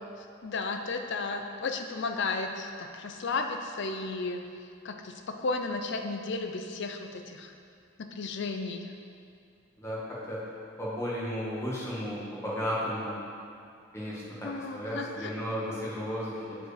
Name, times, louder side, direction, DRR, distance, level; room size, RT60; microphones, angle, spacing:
voice 1, 0.0-4.4 4.8-7.5 8.0-8.9 14.4-15.3, left 3 dB, 60° left, 5 dB, 0.6 m, -34 dB
voice 2, 10.8-13.2 13.9-16.6, equal, 15° left, -7 dB, 1.7 m, -34 dB
7.7 x 4.8 x 5.1 m, 2.4 s
head